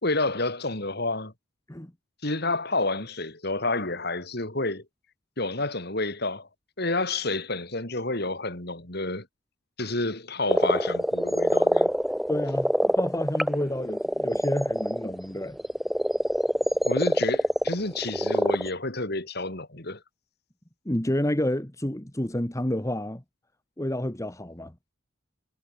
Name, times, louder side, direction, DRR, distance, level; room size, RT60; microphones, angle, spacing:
voice 1, 0.0-1.3 2.2-4.8 5.4-6.5 6.8-9.3 9.8-11.9 16.8-20.0, left 2 dB, 50° left, 4.0 m, -29 dB
sound 1, 10.5-18.7, equal, ahead, 0.4 m, -24 dB
voice 2, 12.3-15.6 20.8-23.2 23.8-24.7, left 1 dB, 15° left, 1.4 m, -29 dB
head